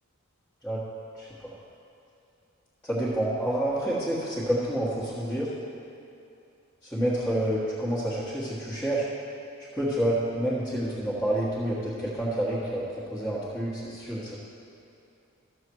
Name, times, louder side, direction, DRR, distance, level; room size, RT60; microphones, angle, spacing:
voice 1, 1.1-1.5 2.8-5.5 6.9-9.1 9.7-14.4, right 1 dB, 10° left, -11 dB, 1.5 m, -28 dB
13.5 x 6.9 x 4.7 m, 2.6 s
head